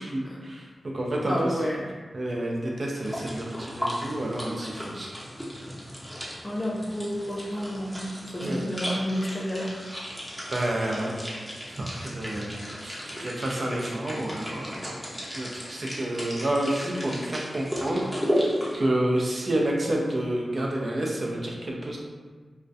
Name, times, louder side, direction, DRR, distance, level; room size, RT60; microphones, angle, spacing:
voice 1, 0.0-1.3 2.1-5.1 8.4-8.6 10.5-11.1 11.7-18.4 18.7-22.0, right 1 dB, 55° right, -2 dB, 0.5 m, -29 dB
voice 2, 1.3-1.9 6.4-8.1 8.3-9.8, equal, 35° left, -4 dB, 0.5 m, -30 dB
sound 1, 3.0-18.8, equal, 5° right, 0.7 m, -34 dB
2.3 x 2.1 x 2.6 m, 1.4 s
cardioid pair, 55°, 0 cm